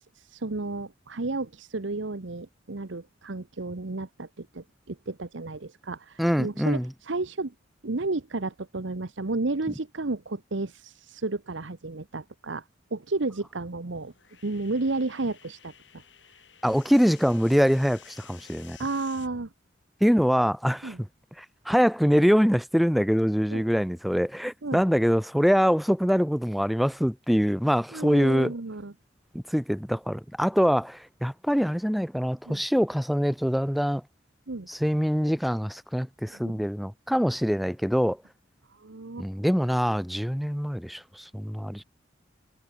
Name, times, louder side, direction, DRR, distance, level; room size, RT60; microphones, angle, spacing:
voice 1, 0.0-7.5 7.8-12.6 12.9-14.1 14.4-16.0 18.8-19.5 20.8-21.0 23.5-23.6 24.6-24.8 27.9-28.9 32.5-32.6 34.5-34.7 36.3-36.6 38.7-39.3, right 3 dB, 75° right, 1.1 m, -32 dB
voice 2, 6.2-6.9 16.6-18.8 20.0-20.9 21.4-28.5 29.3-34.0 34.7-38.2 39.2-41.8, equal, ahead, 0.3 m, -24 dB
sound 1, 13.5-19.3, left 9 dB, 70° left, 7.7 m, -53 dB
head